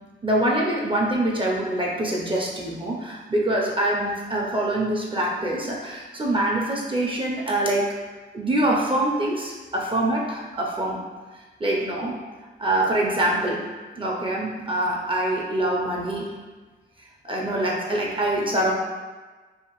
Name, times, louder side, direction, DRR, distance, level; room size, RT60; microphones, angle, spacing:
voice 1, 0.2-8.0 8.3-11.0 11.6-12.2 12.6-13.6 14.0-16.3 17.2-18.7, right 1 dB, 25° right, -2 dB, 0.5 m, -24 dB
2.7 x 2.4 x 2.9 m, 1.3 s
cardioid pair, 85°, 19 cm